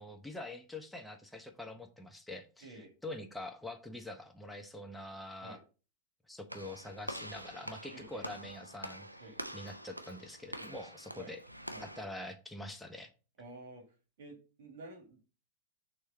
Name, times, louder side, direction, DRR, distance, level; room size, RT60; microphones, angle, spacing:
voice 1, 0.0-5.6 6.3-9.1 9.5-11.4 11.8-13.1, left 1 dB, 5° left, 0.8 m, -45 dB
voice 2, 2.6-2.9 5.4-5.6 7.9-8.3 9.2-9.4 10.5-10.7 11.2-11.3 11.7-11.9 13.4-13.9 14.2-15.2, right 2 dB, 55° right, 1.8 m, -50 dB
Walk footsteps / Slam, 6.5-12.1, equal, 85° right, 0.6 m, -45 dB
6.4 x 3.2 x 5.3 m
figure-of-eight pair, 90°, 0 cm